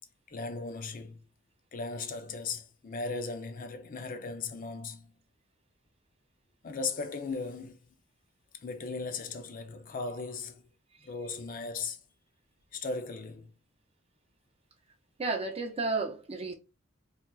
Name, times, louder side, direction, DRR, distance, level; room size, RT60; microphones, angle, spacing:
voice 1, 0.3-1.2 1.7-5.1 6.6-7.8 8.5-10.6 11.0-12.0 12.7-13.5, left 4 dB, 45° left, 0.4 m, -37 dB
voice 2, 15.2-16.5, right 3 dB, 30° right, 0.4 m, -32 dB
4.1 x 2.4 x 2.3 m
head